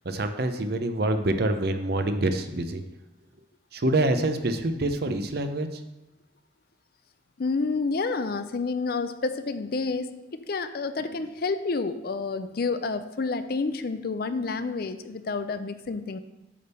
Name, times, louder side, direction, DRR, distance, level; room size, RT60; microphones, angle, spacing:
voice 1, 0.0-2.8 3.7-5.8, right 1 dB, 55° right, 7 dB, 0.7 m, -26 dB
voice 2, 7.4-16.2, left 4 dB, 55° left, 11 dB, 0.5 m, -29 dB
8.6 x 3.5 x 6.8 m, 1.0 s
head